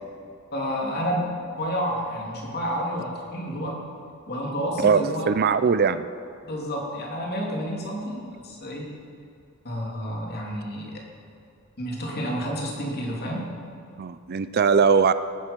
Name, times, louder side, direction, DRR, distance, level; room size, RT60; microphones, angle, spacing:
voice 1, 0.5-3.8 4.3-5.2 6.4-8.9 9.6-10.9 11.8-13.5, equal, 50° left, -1 dB, 2.8 m, -30 dB
voice 2, 4.8-6.0 14.0-15.1, right 6 dB, 45° right, 13 dB, 0.4 m, -20 dB
19.0 x 9.8 x 5.3 m, 2.5 s
head